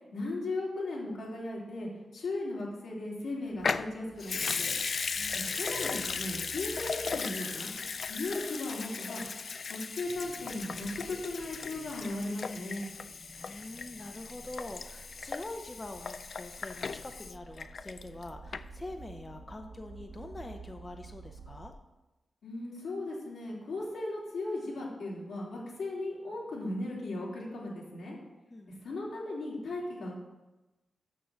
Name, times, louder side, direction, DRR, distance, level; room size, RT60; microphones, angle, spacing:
voice 1, 0.1-4.7 5.5-7.7 8.0-9.2 9.7-12.8 22.4-28.2 28.8-30.1, left 2 dB, 90° left, -5 dB, 3.0 m, -37 dB
Water tap faucet / Sink (filling or washing) / Liquid, 3.6-18.2 18.5-18.6, left 5 dB, 60° left, 0.3 m, -37 dB
voice 2, 5.2-5.6 13.4-21.7 28.5-28.8, left 2 dB, 25° left, 4 dB, 0.6 m, -44 dB
sound 1, 10.0-21.7, right 3 dB, 45° right, 2.0 m, -51 dB
6.5 x 6.4 x 7.0 m, 1.1 s
cardioid pair, 90°, 0 cm